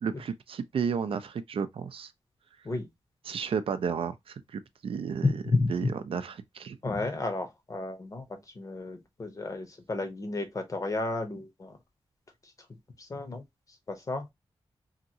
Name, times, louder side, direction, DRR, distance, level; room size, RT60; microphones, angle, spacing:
voice 1, 0.0-2.1 3.3-5.4 5.7-6.8, right 6 dB, 70° right, 0.4 m, -32 dB
voice 2, 5.2-5.9 6.8-8.2 8.6-11.7 13.1-13.4 13.9-14.2, left 3 dB, 35° left, 0.7 m, -31 dB
2.8 x 2.6 x 2.7 m
wide cardioid pair, 140°, 10 cm